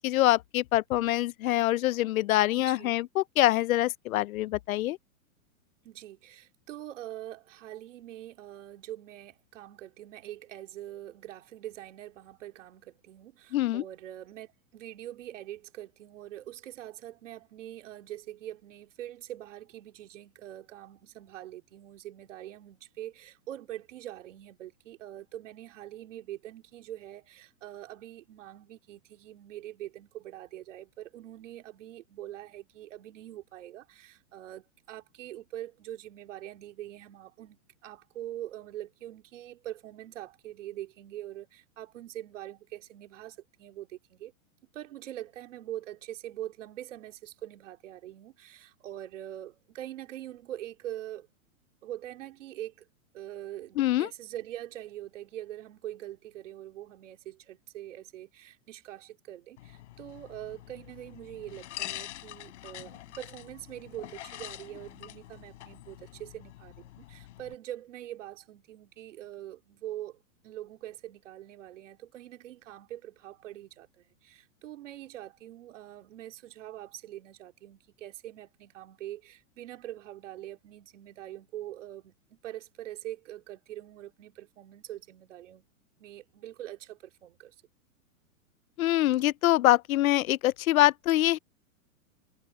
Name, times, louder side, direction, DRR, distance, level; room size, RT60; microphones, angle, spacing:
voice 1, 0.0-5.0 13.5-13.8 53.8-54.1 88.8-91.4, left 15 dB, 75° left, 0.5 m, -25 dB
voice 2, 2.6-2.9 5.8-44.3 44.7-51.3 51.8-52.9 53.1-85.6 86.0-87.5, right 13 dB, 60° right, 3.2 m, -43 dB
sound 1, 59.6-67.5, left 15 dB, 55° left, 7.4 m, -45 dB
supercardioid pair, 165°, 42 cm